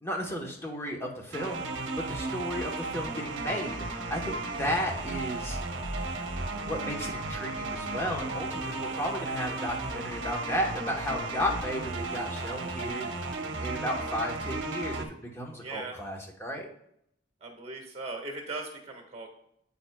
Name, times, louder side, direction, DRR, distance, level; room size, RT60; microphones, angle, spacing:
voice 1, 0.0-1.6 2.0-5.6 6.6-13.1 13.6-16.7, equal, 15° left, -1 dB, 1.0 m, -34 dB
sound 1, 1.3-15.0, right 2 dB, 65° right, 0.9 m, -34 dB
voice 2, 15.6-16.0 17.4-19.3, right 3 dB, 30° right, 3 dB, 1.6 m, -39 dB
9.0 x 8.5 x 2.3 m, 0.75 s
head